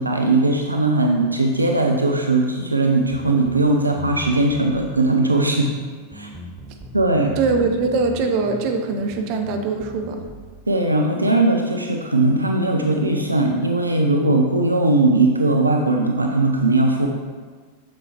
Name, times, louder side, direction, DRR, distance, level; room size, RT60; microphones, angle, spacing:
voice 1, 0.0-5.7 6.1-6.3 6.9-7.3 10.7-17.1, right 2 dB, 80° right, 2 dB, 0.5 m, -19 dB
sound 1, 3.1-10.5, equal, 5° right, 0.8 m, -39 dB
voice 2, 7.4-10.3, right 4 dB, 45° right, 4 dB, 0.9 m, -22 dB
7.8 x 6.8 x 2.9 m, 1.5 s
figure-of-eight pair, 90°, 0 cm